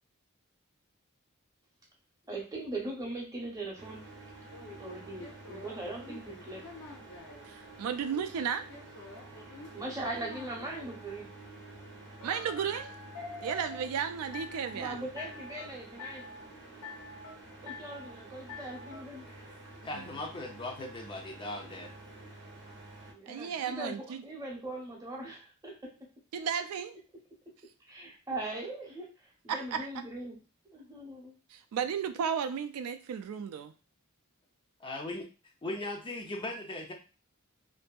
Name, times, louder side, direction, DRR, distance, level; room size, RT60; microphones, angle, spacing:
voice 1, 2.3-4.0 4.7-6.6 9.4-11.3 14.7-16.3 17.6-19.6 23.1-25.9 27.9-29.1 29.4-30.4 30.6-31.3, right 2 dB, 15° right, -2 dB, 0.7 m, -40 dB
sound 1, 3.8-23.1, right 2 dB, 50° right, 0.7 m, -50 dB
sound 2, 4.5-7.4 8.0-10.9 12.2-13.9 14.3-14.8 15.2-15.7 16.0-16.5 16.8-17.4 17.7-18.1 18.5-19.0, left 3 dB, 80° left, 0.7 m, -46 dB
voice 2, 7.4-8.6 12.2-12.9 13.4-15.0 23.3-24.2 26.3-27.0 29.5-29.9 31.5-33.7, right 7 dB, 80° right, 10 dB, 0.3 m, -34 dB
voice 3, 19.8-21.9 34.8-35.3 35.6-36.9, left 2 dB, 20° left, 2 dB, 0.4 m, -38 dB
2.6 x 2.6 x 2.2 m, 0.33 s
head